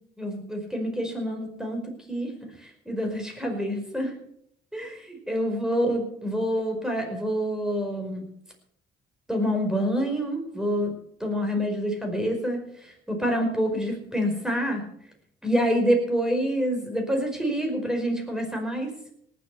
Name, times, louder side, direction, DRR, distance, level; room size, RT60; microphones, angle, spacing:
voice 1, 0.2-1.8 2.1-2.3 2.6-4.1 4.7-8.2 9.3-10.9 11.2-14.8 15.4-18.9, equal, 5° right, 2 dB, 5.1 m, -27 dB
18.5 x 8.2 x 7.0 m, 0.71 s
cardioid pair, 90°, 20 cm